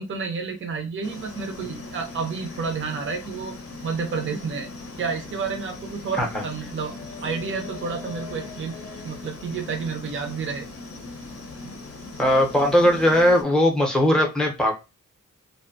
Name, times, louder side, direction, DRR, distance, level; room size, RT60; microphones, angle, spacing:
voice 1, 0.0-3.5 3.8-4.7 5.0-7.0 7.2-8.7 9.0-10.7 11.6-11.8, right 5 dB, 40° right, 4 dB, 0.5 m, -30 dB
sound 1, 1.0-13.4, left 3 dB, 45° left, 0.6 m, -39 dB
voice 2, 12.2-14.7, left 1 dB, ahead, 1 dB, 0.6 m, -19 dB
2.6 x 2.1 x 2.5 m, 0.27 s
wide cardioid pair, 150°, 32 cm